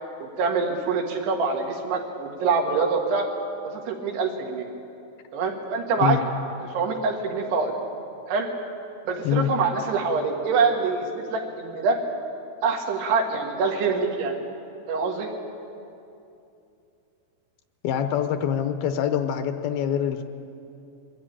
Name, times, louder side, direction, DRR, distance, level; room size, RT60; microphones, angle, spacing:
voice 1, 0.2-3.3 3.9-4.7 5.3-6.2 6.7-7.7 8.3-8.5 9.1-12.0 12.6-14.4 14.9-15.3, right 4 dB, 90° right, 1 dB, 4.0 m, -25 dB
voice 2, 17.8-20.2, left 9 dB, 80° left, 8 dB, 2.5 m, -24 dB
22.5 x 14.0 x 8.8 m, 2.7 s
omnidirectional pair, 4.6 m